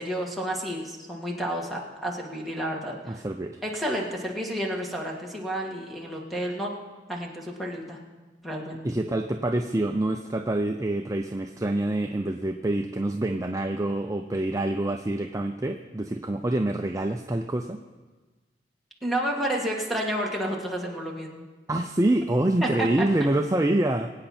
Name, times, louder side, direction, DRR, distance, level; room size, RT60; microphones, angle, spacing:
voice 1, 0.0-3.2 3.6-6.7 7.1-8.0 8.4-8.8 19.0-21.5 22.6-23.1, right 1 dB, ahead, -3 dB, 1.8 m, -30 dB
voice 2, 3.1-3.6 8.8-17.8 21.7-24.1, right 1 dB, 20° right, 4 dB, 0.5 m, -26 dB
22.0 x 9.1 x 4.3 m, 1.3 s
head